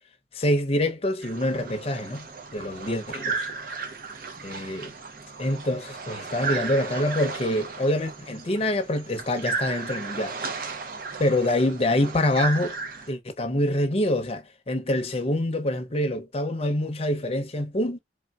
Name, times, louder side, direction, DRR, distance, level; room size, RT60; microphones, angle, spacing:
voice 1, 0.3-2.3 2.5-3.5 4.4-4.9 5.4-10.4 11.2-12.8 13.1-18.0, left 1 dB, 35° left, 0.6 m, -26 dB
sound 1, 1.2-13.1, right 4 dB, 55° right, 0.6 m, -35 dB
3.5 x 2.6 x 2.3 m
head